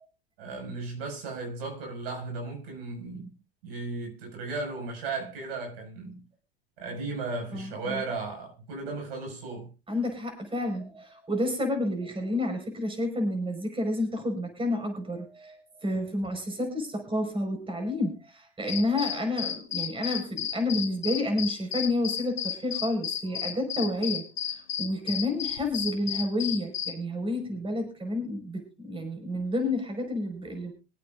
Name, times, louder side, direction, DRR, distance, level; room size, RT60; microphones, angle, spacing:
voice 1, 0.4-3.3 3.6-6.2 6.8-9.7, right 3 dB, 75° right, 5.9 m, -35 dB
voice 2, 7.5-8.0 9.9-30.7, left 1 dB, 20° right, 5.4 m, -30 dB
sound 1, 18.7-26.9, left 10 dB, 90° left, 1.6 m, -33 dB
25.5 x 8.6 x 2.6 m
hypercardioid pair, 100°, 29 cm